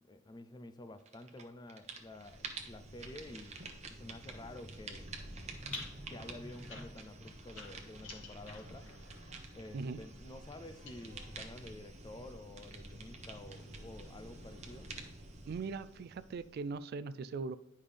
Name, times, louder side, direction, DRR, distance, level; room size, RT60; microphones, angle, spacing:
voice 1, 0.1-5.1 6.1-8.9 9.5-14.9, left 1 dB, 20° left, 0.4 m, -50 dB
sound 1, 1.1-1.4 1.7-16.7, right 3 dB, 35° right, 0.9 m, -49 dB
sound 2, 5.4-11.5 12.3-15.1, left 2 dB, 80° left, 2.0 m, -52 dB
voice 2, 15.5-17.6, right 4 dB, 50° right, 0.3 m, -40 dB
9.9 x 5.4 x 3.3 m
head